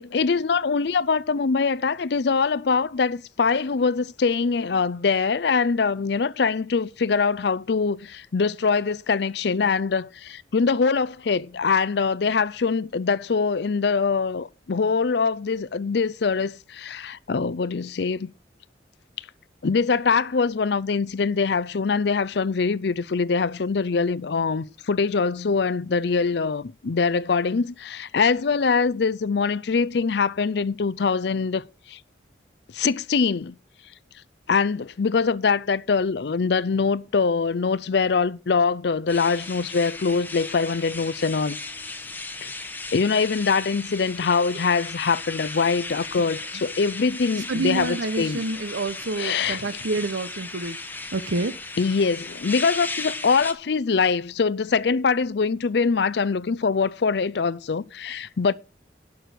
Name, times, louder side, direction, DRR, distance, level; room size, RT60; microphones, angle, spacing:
voice 1, 0.0-18.3 19.6-32.0 32.7-33.5 34.5-41.6 42.4-48.4 49.2-49.6 51.8-58.5, left 5 dB, 60° left, 0.5 m, -23 dB
sound 1, 39.1-53.5, left 3 dB, 10° left, 0.9 m, -36 dB
voice 2, 47.5-50.8 51.1-51.5, right 3 dB, 80° right, 0.9 m, -28 dB
11.5 x 6.2 x 6.3 m
head